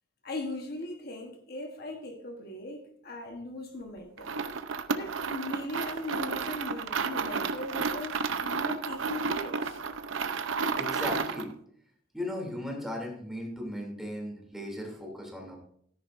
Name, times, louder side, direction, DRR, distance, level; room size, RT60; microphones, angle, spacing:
voice 1, 0.2-4.4 4.9-9.8, left 1 dB, 55° left, 1.2 m, -39 dB
sound 1, 4.2-11.5, right 5 dB, 85° right, 0.7 m, -32 dB
voice 2, 10.8-11.5 12.1-15.6, left 1 dB, ahead, 2.8 m, -37 dB
13.5 x 10.0 x 2.6 m
head